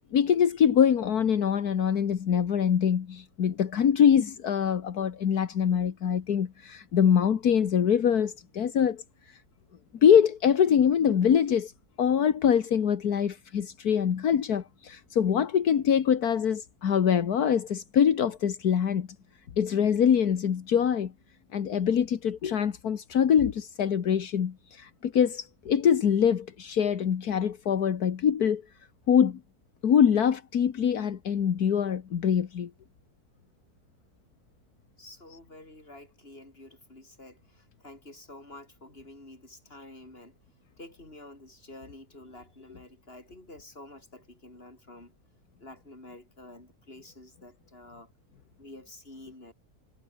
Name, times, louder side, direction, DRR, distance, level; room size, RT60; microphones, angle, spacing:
voice 1, 0.1-9.4 10.0-11.7 12.0-19.1 19.6-21.1 21.5-28.6 29.1-29.4 29.8-32.7, left 8 dB, 80° left, 1.9 m, -24 dB
voice 2, 35.0-40.4 40.8-45.1 45.6-48.1 48.6-49.5, left 1 dB, 40° left, 6.2 m, -49 dB
omnidirectional pair, 1.6 m